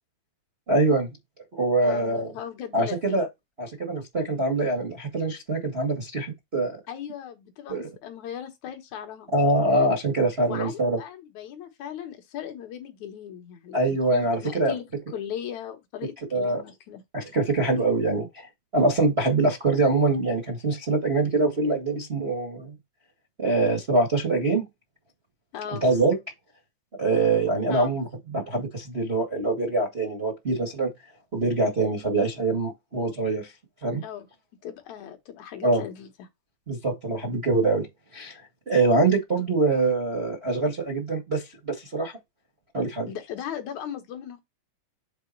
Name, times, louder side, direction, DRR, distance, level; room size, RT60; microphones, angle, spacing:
voice 1, 0.7-1.1 1.5-2.3 2.7-3.3 3.6-6.7 7.7-7.9 9.3-11.0 13.7-14.7 16.3-16.6 17.1-18.5 18.7-22.7 23.4-24.6 25.8-26.2 27.0-30.9 31.3-33.5 33.8-34.0 35.6-35.8 36.7-37.9 38.1-42.1 42.7-43.1, right 2 dB, 40° right, 0.8 m, -24 dB
voice 2, 1.8-3.2 6.9-9.3 10.5-14.9 15.1-17.0 25.5-25.8 27.7-28.0 34.0-34.3 34.6-36.3 43.1-44.4, left 9 dB, 65° left, 1.9 m, -38 dB
7.5 x 3.6 x 4.6 m
omnidirectional pair, 5.0 m